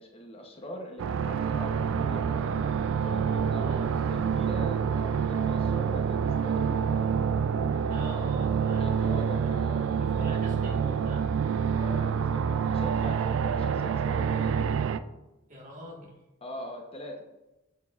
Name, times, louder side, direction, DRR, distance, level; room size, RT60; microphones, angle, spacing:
voice 1, 0.0-2.5 3.0-7.1 8.8-10.4 11.7-14.8 16.4-17.3, equal, 30° left, 2 dB, 0.7 m, -42 dB
sound 1, 1.0-15.0, right 7 dB, 65° right, 0.3 m, -27 dB
voice 2, 3.6-3.9 7.9-8.9 10.0-11.2 15.5-16.1, equal, 40° right, -3 dB, 1.5 m, -42 dB
7.4 x 6.9 x 2.4 m, 0.97 s
head